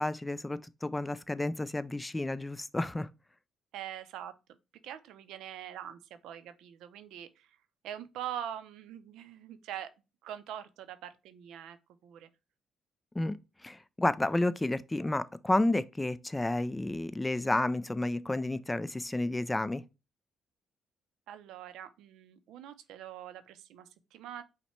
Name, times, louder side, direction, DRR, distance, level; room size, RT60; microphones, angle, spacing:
voice 1, 0.0-3.1 13.1-13.4 13.6-19.8, left 2 dB, 15° left, 0.3 m, -31 dB
voice 2, 3.7-4.3 4.8-7.6 7.8-9.9 10.2-11.8 12.0-12.3 21.3-24.4, right 10 dB, 90° right, 0.5 m, -43 dB
5.6 x 2.2 x 4.3 m
cardioid pair, 90°, 0 cm